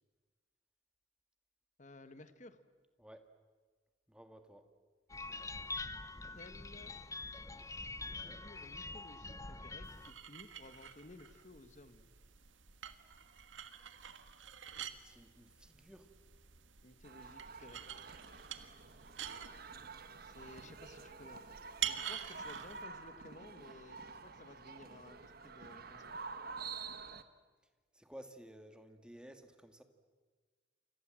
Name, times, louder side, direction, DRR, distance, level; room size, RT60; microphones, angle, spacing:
voice 1, 1.8-2.6 6.3-6.9 8.2-12.1 16.8-18.0 20.2-21.4 21.8-26.1, left 2 dB, 40° left, 11 dB, 1.4 m, -56 dB
voice 2, 3.0-3.3 4.1-4.7 8.1-8.4 15.0-16.1 27.9-29.8, right 1 dB, 5° right, 7 dB, 1.7 m, -55 dB
sound 1, 5.1-10.1, left 3 dB, 15° left, 0.7 m, -45 dB
sound 2, 9.8-22.8, right 10 dB, 75° right, 1.6 m, -47 dB
sound 3, 17.0-27.2, right 4 dB, 50° right, 1.3 m, -49 dB
29.0 x 26.0 x 7.6 m, 1.4 s
head